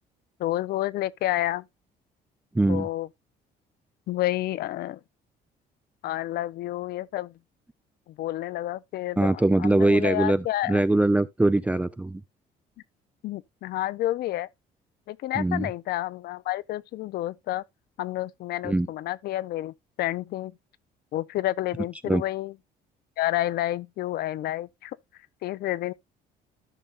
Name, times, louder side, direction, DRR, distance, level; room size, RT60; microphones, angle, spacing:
voice 1, 0.4-1.6 2.7-3.1 4.1-5.0 6.0-7.3 8.1-10.8 13.2-14.5 15.1-17.6 18.0-20.5 21.1-22.5 23.2-25.0 25.4-25.9, left 15 dB, 70° left, 0.6 m, -30 dB
voice 2, 2.5-2.9 9.2-12.2 15.4-15.7 18.6-18.9 22.1-22.2, right 2 dB, 10° right, 0.4 m, -22 dB
14.0 x 5.4 x 2.4 m
cardioid pair, 110°, 17 cm